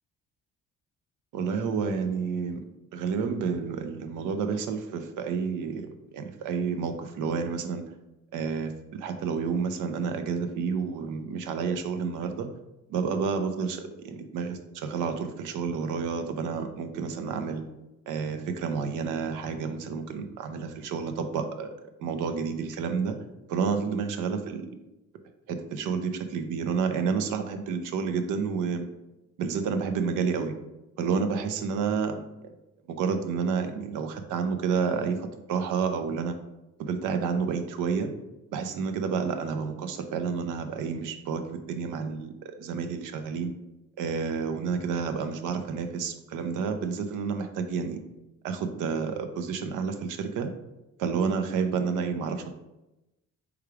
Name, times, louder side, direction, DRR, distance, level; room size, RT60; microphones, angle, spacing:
voice 1, 1.3-2.6 2.9-5.8 6.1-7.8 8.3-12.5 12.9-17.6 18.1-21.7 22.0-23.2 23.5-24.7 25.5-28.9 29.4-30.5 31.0-32.5 32.9-36.3 36.8-38.1 38.5-43.5 44.0-48.0 48.4-50.5 51.0-52.5, right 5 dB, 90° right, 7 dB, 0.6 m, -30 dB
3.5 x 3.2 x 4.7 m, 0.96 s
cardioid pair, 90°, 30 cm